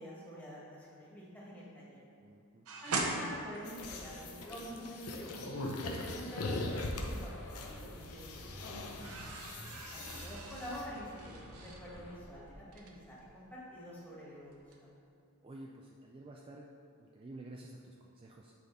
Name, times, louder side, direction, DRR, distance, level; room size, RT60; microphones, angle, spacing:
voice 1, 0.0-2.0 2.8-5.5 5.8-9.1 9.9-14.9, equal, 10° left, -7 dB, 1.7 m, -47 dB
voice 2, 2.2-2.6 9.5-9.8 15.4-16.7 17.0-18.5, right 2 dB, 25° right, -1 dB, 0.4 m, -51 dB
sound 1, 2.7-4.7 7.0-7.8 8.2-14.2 14.5-14.8, right 3 dB, 75° right, 0.8 m, -42 dB
sound 2, 3.7-10.9, left 2 dB, 80° left, 0.8 m, -41 dB
sound 3, 6.9-12.2, equal, 60° left, 1.1 m, -51 dB
8.1 x 5.0 x 4.0 m, 2.5 s
head